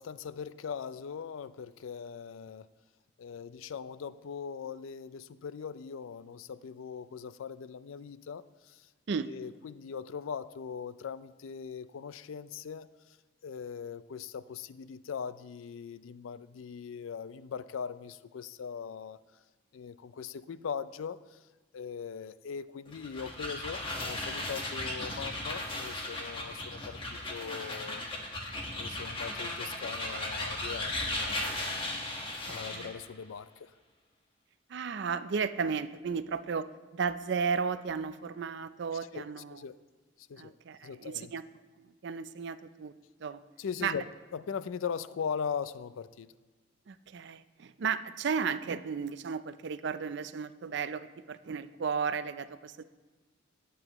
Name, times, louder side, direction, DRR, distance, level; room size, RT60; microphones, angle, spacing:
voice 1, 0.0-2.7 3.2-8.9 9.2-13.2 13.4-19.2 19.7-21.4 21.7-28.0 28.8-31.8 32.5-33.7 39.1-39.8 40.2-40.6 40.8-41.3 43.6-44.1 44.3-46.3, left 6 dB, 90° left, 15 dB, 0.4 m, -40 dB
sound 1, 22.9-33.0, left 1 dB, 25° left, 1.4 m, -36 dB
voice 2, 34.7-36.7 36.9-39.6 40.4-41.4 42.0-42.9 43.2-43.4 43.8-43.9 46.9-52.8, right 6 dB, 60° right, 13 dB, 0.4 m, -34 dB
18.5 x 7.7 x 3.0 m, 1.3 s
head